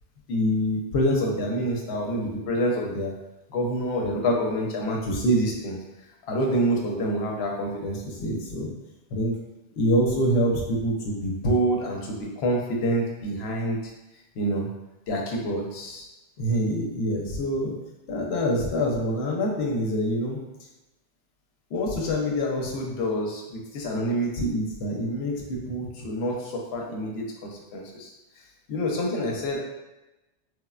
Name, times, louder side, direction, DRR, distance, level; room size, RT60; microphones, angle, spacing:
voice 1, 0.3-3.1 3.5-5.8 6.3-8.7 9.1-9.4 9.8-13.8 14.4-14.7 15.1-16.0 16.4-17.8 18.1-20.4 21.7-28.1 28.7-29.6, equal, 70° left, 0 dB, 0.8 m, -26 dB
3.3 x 2.1 x 2.3 m, 0.99 s
omnidirectional pair, 1.2 m